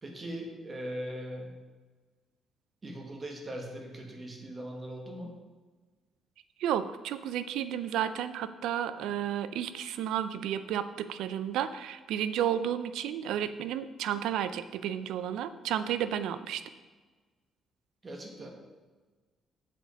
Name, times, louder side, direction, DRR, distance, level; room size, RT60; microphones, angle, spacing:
voice 1, 0.0-1.6 2.8-5.4 18.0-18.5, right 1 dB, 30° right, 2 dB, 1.5 m, -40 dB
voice 2, 6.6-16.6, right 10 dB, 85° right, 13 dB, 0.5 m, -32 dB
7.6 x 5.2 x 6.4 m, 1.3 s
cardioid pair, 90°, 0 cm